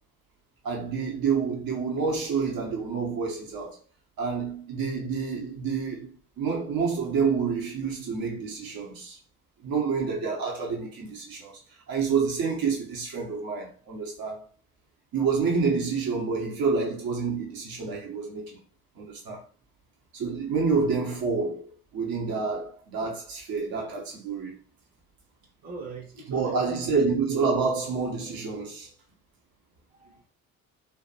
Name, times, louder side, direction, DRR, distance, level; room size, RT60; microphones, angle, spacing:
voice 1, 0.6-3.8 4.2-9.2 9.6-11.6 11.9-14.4 15.1-18.6 19.0-19.4 20.1-24.6 26.3-28.9, right 5 dB, 55° right, 2.2 m, -28 dB
voice 2, 25.6-27.1 30.0-30.3, right 4 dB, 80° right, 2.6 m, -40 dB
8.0 x 3.0 x 4.8 m
hypercardioid pair, 50°, 42 cm